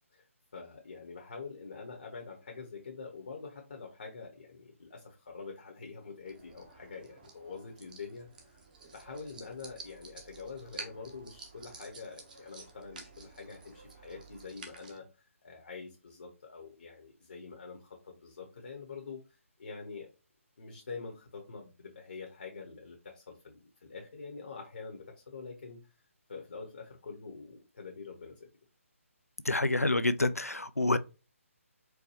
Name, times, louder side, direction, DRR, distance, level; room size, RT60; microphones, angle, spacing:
voice 1, 0.5-8.6 8.9-19.2 19.6-20.1 20.6-25.9 26.3-28.5, left 4 dB, 50° left, 0.9 m, -45 dB
sound 1, 6.3-15.0, right 4 dB, 35° right, 0.8 m, -51 dB
voice 2, 29.5-31.0, left 2 dB, 90° left, 0.4 m, -27 dB
4.6 x 2.2 x 2.8 m
figure-of-eight pair, 145°, 8 cm